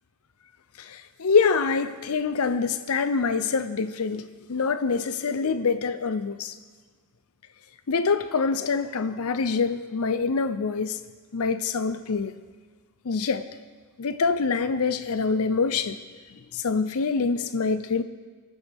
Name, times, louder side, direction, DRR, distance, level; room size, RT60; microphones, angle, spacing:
voice 1, 0.8-6.5 7.9-11.0 11.3-12.3 13.1-13.4 14.0-16.0 16.5-18.0, left 5 dB, 75° left, 11 dB, 0.6 m, -25 dB
28.0 x 9.4 x 3.5 m, 1.5 s
head